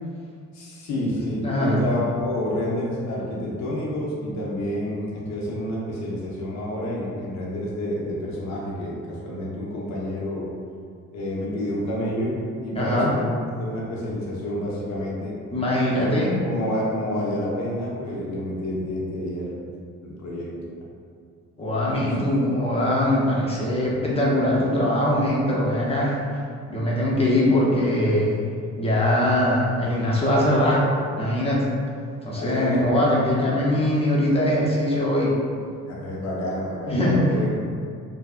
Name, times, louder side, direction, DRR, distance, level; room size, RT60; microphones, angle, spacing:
voice 1, 0.5-10.5 11.1-13.3 13.6-15.4 15.9-16.1 16.4-19.6 20.0-20.7 22.0-22.4 32.3-32.9 35.9-37.5, left 1 dB, 65° left, -4 dB, 0.6 m, -29 dB
voice 2, 1.4-1.8 12.7-13.1 15.5-16.3 21.6-26.2 26.7-28.4 28.8-30.8 31.2-31.6 32.2-35.3 36.9-37.4, left 1 dB, 20° left, -5 dB, 0.6 m, -21 dB
2.6 x 2.3 x 2.3 m, 2.2 s
cardioid pair, 90°, 30 cm